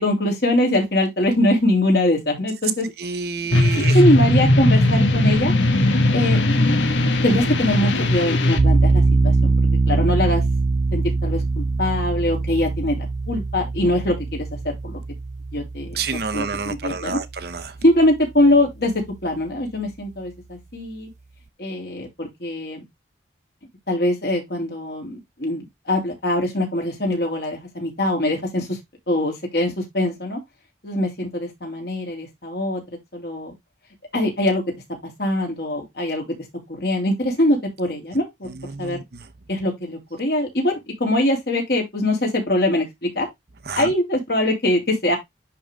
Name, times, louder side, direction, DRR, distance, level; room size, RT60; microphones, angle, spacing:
voice 1, 0.0-2.9 3.9-5.5 6.1-6.4 7.2-9.5 9.9-10.4 10.9-14.5 14.8-15.0 15.5-16.0 16.3-17.2 17.8-18.9 19.2-21.1 21.6-22.8 23.9-28.8 29.1-30.4 30.8-32.8 33.1-33.5 34.1-34.6 35.2-36.2 36.7-38.3 38.8-39.0 39.5-40.7 41.0-43.3 43.7-45.2, left 1 dB, 60° left, 3.4 m, -22 dB
voice 2, 3.0-4.0 15.9-17.8 38.5-39.3 43.7-43.9, right 4 dB, 55° right, 0.8 m, -29 dB
sound 1, 3.5-8.6, left 1 dB, 85° left, 1.5 m, -18 dB
sound 2, 8.6-17.4, right 3 dB, 40° right, 0.4 m, -22 dB
10.5 x 3.9 x 3.4 m
head